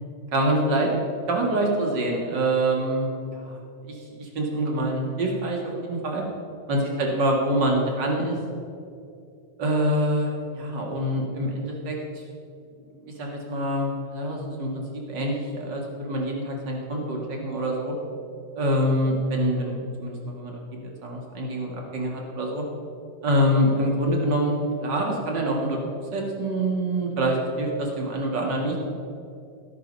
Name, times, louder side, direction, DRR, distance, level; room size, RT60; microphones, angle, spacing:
voice 1, 0.3-0.9 1.3-3.6 3.9-6.2 6.7-8.4 9.6-12.2 13.0-17.9 18.6-22.6 23.2-25.8 26.1-28.8, right 1 dB, 40° right, 0 dB, 2.1 m, -26 dB
13.0 x 12.0 x 5.4 m, 2.5 s
omnidirectional pair, 3.9 m